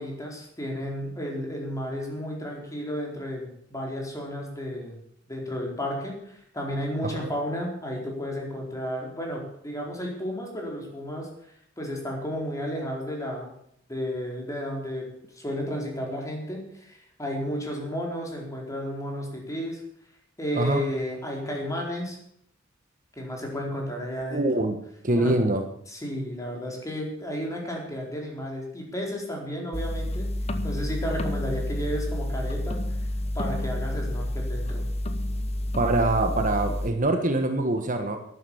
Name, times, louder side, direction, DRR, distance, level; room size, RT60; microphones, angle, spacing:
voice 1, 0.0-4.9 5.3-11.3 11.8-13.5 13.9-15.1 15.3-19.8 20.4-22.2 23.2-24.5 25.2-25.4 25.9-30.3 30.6-32.8 33.3-34.8, equal, 15° left, 0 dB, 4.4 m, -32 dB
voice 2, 24.3-24.8 25.0-25.6 35.8-38.2, right 2 dB, 40° right, 5 dB, 1.5 m, -24 dB
sound 1, 29.7-36.9, left 1 dB, 30° left, 1.1 m, -29 dB
12.0 x 11.5 x 7.1 m, 0.68 s
head